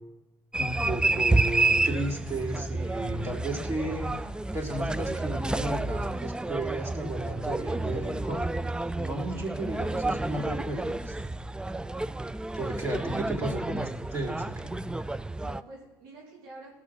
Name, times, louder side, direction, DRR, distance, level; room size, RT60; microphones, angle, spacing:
sound 1, 0.5-15.6, right 2 dB, 10° right, 0.4 m, -30 dB
voice 1, 0.6-8.4 8.9-11.3 12.6-14.8, right 1 dB, 30° right, -3 dB, 3.7 m, -34 dB
voice 2, 3.1-3.5 9.1-9.9 12.6-13.3 15.4-16.8, right 1 dB, 90° right, -5 dB, 3.9 m, -50 dB
17.0 x 6.3 x 6.1 m, 1.1 s
supercardioid pair, 70°, 9 cm